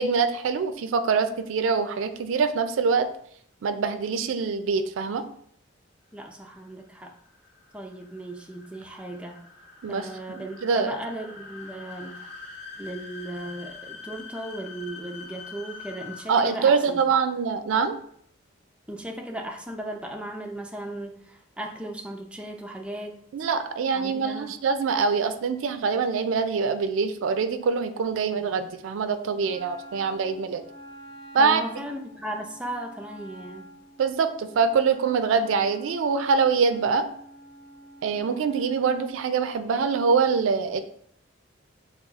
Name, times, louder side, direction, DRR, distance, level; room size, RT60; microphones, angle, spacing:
voice 1, 0.0-3.1 3.6-5.2 9.8-10.9 16.3-18.0 23.3-30.6 31.3-31.6 34.0-37.1 38.0-40.8, right 5 dB, 75° right, 10 dB, 0.3 m, -24 dB
voice 2, 6.1-7.1 7.7-9.4 9.9-12.3 12.8-17.2 18.9-23.2 23.9-24.6 31.4-33.8, right 1 dB, 5° right, 2 dB, 0.4 m, -36 dB
sound 1, 6.2-16.9, left 4 dB, 65° left, 1.2 m, -44 dB
Wind instrument woodwind instrument, 29.4-39.0, right 1 dB, 20° left, 0.8 m, -47 dB
5.4 x 2.3 x 2.3 m, 0.66 s
head